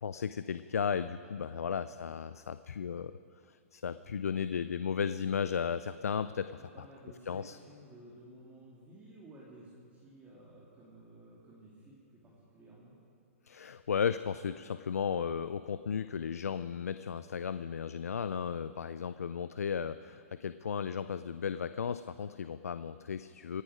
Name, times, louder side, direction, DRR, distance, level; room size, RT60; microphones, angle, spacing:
voice 1, 0.0-3.1 3.5-6.6 7.3-7.6 13.5-23.6, left 7 dB, 85° left, 13 dB, 0.5 m, -35 dB
voice 2, 1.3-2.0 6.6-13.0, right 1 dB, 20° right, -6 dB, 3.1 m, -55 dB
26.5 x 9.8 x 5.1 m, 2.5 s
hypercardioid pair, 130°, 8 cm